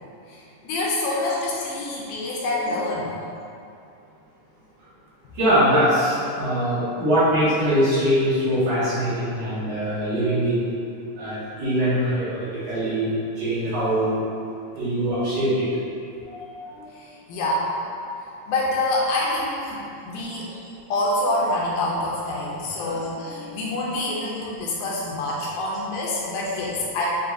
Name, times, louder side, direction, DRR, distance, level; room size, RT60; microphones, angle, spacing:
voice 1, 0.3-3.1 16.9-17.7 18.5-20.5 20.9-27.1, left 2 dB, 80° left, -4 dB, 2.1 m, -26 dB
voice 2, 2.6-2.9 5.4-10.5 11.2-12.3 12.7-14.2 14.8-15.5 16.3-16.9 22.9-23.0 23.3-23.6, equal, 55° right, -15 dB, 2.5 m, -23 dB
6.7 x 2.8 x 2.6 m, 2.6 s
omnidirectional pair, 3.9 m